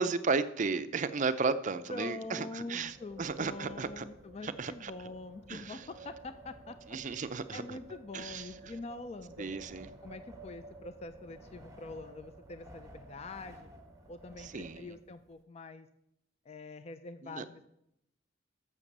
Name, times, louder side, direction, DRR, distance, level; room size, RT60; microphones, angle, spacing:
voice 1, 0.0-4.0 4.4-4.9 5.5-5.8 6.9-7.8 8.1-8.5 9.4-9.9 14.4-14.9 17.2-17.5, right 4 dB, 40° right, 12 dB, 0.5 m, -34 dB
voice 2, 1.2-1.6 1.9-9.7 10.0-13.7 14.1-15.9 16.5-17.7, left 3 dB, 30° left, 11 dB, 0.4 m, -45 dB
Wind, 2.7-15.3, right 2 dB, 15° right, 1.1 m, -53 dB
6.9 x 6.6 x 7.2 m, 0.80 s
head